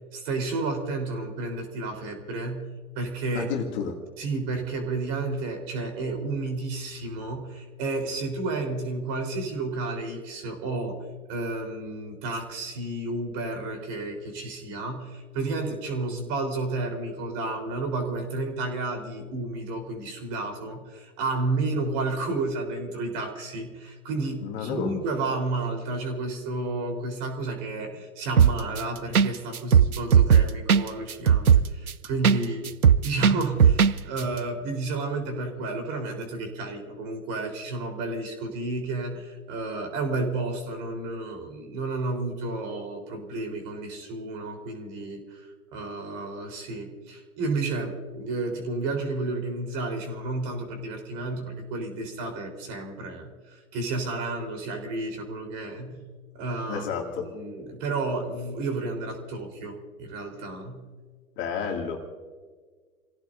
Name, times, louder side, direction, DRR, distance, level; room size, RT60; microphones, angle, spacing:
voice 1, 0.1-3.5 4.2-32.7 33.0-56.0 56.3-56.8 57.2-60.8, right 2 dB, 35° right, 3 dB, 4.1 m, -31 dB
voice 2, 3.3-4.0 24.4-24.9 32.4-32.5 56.7-57.3 61.4-62.0, left 6 dB, 25° left, 0 dB, 2.5 m, -31 dB
sound 1, 28.4-28.8 29.1-29.3 29.5-32.4 32.7-33.9 34.2-34.3, right 7 dB, 85° right, 0.6 m, -17 dB
30.0 x 17.0 x 2.7 m, 1.5 s
figure-of-eight pair, 110°, 43 cm